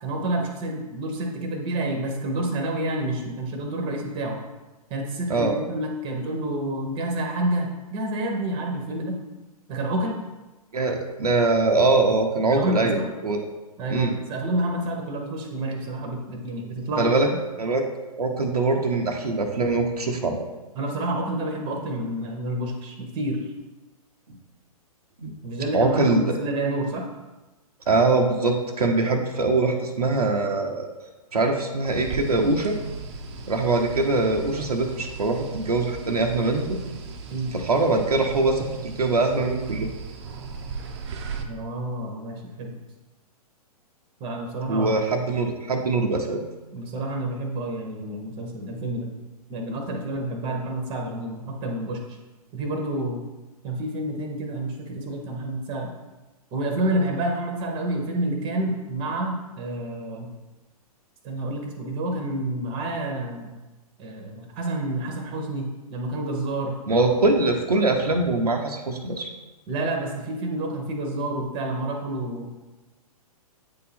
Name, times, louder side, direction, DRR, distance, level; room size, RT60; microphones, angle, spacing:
voice 1, 0.0-4.4 4.9-9.2 9.7-10.2 12.5-13.1 13.8-17.4 20.7-23.4 25.4-27.1 37.3-37.5 41.5-42.8 44.2-45.1 46.7-49.1 49.5-52.2 52.5-53.2 53.6-55.9 56.5-60.3 61.2-63.5 64.0-67.1 69.7-72.5, right 1 dB, 25° right, 2 dB, 1.1 m, -29 dB
voice 2, 10.7-13.4 13.9-14.1 17.0-17.3 17.6-17.8 18.2-20.5 25.2-25.3 25.7-26.4 27.9-30.9 31.3-32.8 33.5-36.8 37.5-39.9 44.7-46.4 66.9-69.3, right 3 dB, 80° right, 2 dB, 0.8 m, -23 dB
sound 1, 31.9-41.4, right 5 dB, 45° right, 0.7 m, -37 dB
8.3 x 2.8 x 4.2 m, 1.1 s
figure-of-eight pair, 115°, 20 cm